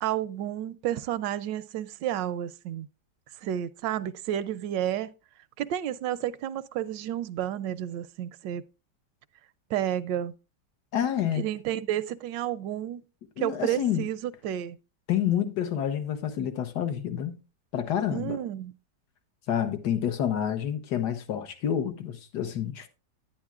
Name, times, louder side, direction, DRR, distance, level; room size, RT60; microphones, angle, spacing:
voice 1, 0.0-2.9 3.4-5.1 5.6-8.6 9.7-10.3 11.3-13.1 13.4-14.8 18.1-18.7, right 11 dB, 85° right, 1.3 m, -31 dB
voice 2, 10.9-11.4 13.4-14.1 15.1-17.4 17.7-18.4 19.5-22.9, left 9 dB, 70° left, 1.6 m, -28 dB
10.5 x 10.0 x 2.4 m
omnidirectional pair, 1.9 m